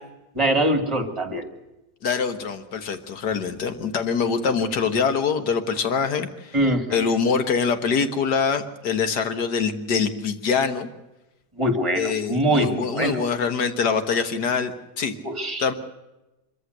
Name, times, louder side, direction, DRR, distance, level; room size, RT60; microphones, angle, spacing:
voice 1, 0.4-1.4 6.5-7.1 11.6-13.2 15.2-15.6, right 1 dB, 20° right, 6 dB, 2.6 m, -23 dB
voice 2, 2.0-6.6 6.9-10.9 12.0-15.1 15.6-15.7, left 5 dB, 85° left, 9 dB, 2.0 m, -24 dB
24.5 x 14.5 x 8.0 m, 1.0 s
omnidirectional pair, 1.7 m